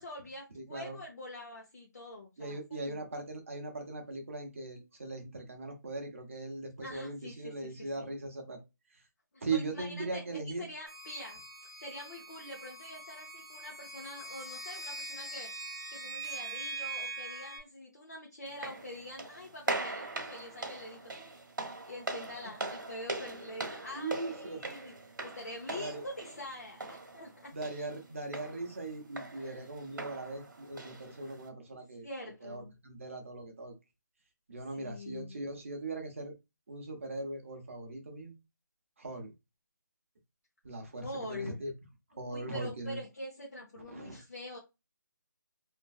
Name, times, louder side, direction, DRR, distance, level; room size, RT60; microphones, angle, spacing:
voice 1, 0.0-3.0 6.8-8.2 9.3-11.4 11.8-15.6 15.9-21.3 21.9-24.9 25.2-27.5 29.3-29.6 32.0-32.7 34.8-35.4 41.0-41.6 42.2-44.6, left 1 dB, 50° left, 0.8 m, -45 dB
voice 2, 0.5-1.0 2.4-8.6 9.4-10.7 23.9-24.6 25.8-26.0 27.5-32.1 32.4-33.7 34.5-36.3 36.7-38.3 39.0-39.3 40.6-41.7 42.2-43.0 43.9-44.2, right 3 dB, 40° right, 0.7 m, -39 dB
sound 1, 10.9-17.6, right 3 dB, 80° left, 1.3 m, -42 dB
sound 2, 18.5-31.5, right 2 dB, 75° right, 0.9 m, -41 dB
3.0 x 2.6 x 2.3 m
hypercardioid pair, 175°, 11 cm